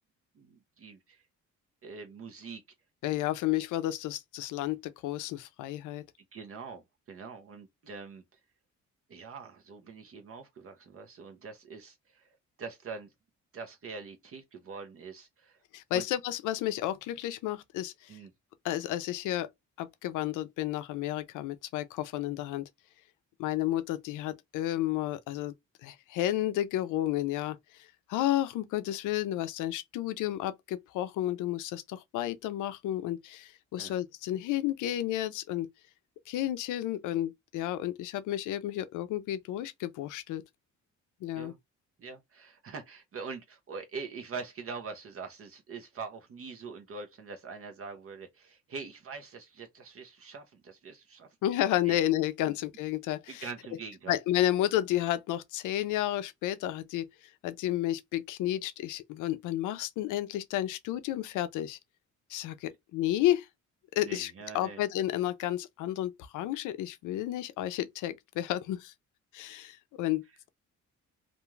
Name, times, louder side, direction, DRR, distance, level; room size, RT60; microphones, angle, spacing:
voice 1, 0.3-1.2 1.8-2.6 6.3-8.2 9.1-13.1 13.5-15.6 15.9-16.1 18.1-18.3 33.8-33.9 41.3-41.6 42.0-51.3 51.9-52.0 52.5-52.6 53.3-54.2 64.0-64.8, right 5 dB, 50° right, 0.7 m, -43 dB
voice 2, 3.0-6.1 15.7-18.2 18.6-19.5 19.8-22.7 23.4-25.5 25.8-35.7 36.3-40.4 41.2-41.5 51.4-53.4 54.1-57.1 57.4-61.8 62.3-63.5 64.0-68.9 69.3-70.2, left 13 dB, 85° left, 0.5 m, -31 dB
2.5 x 2.3 x 3.1 m
cardioid pair, 90°, 30 cm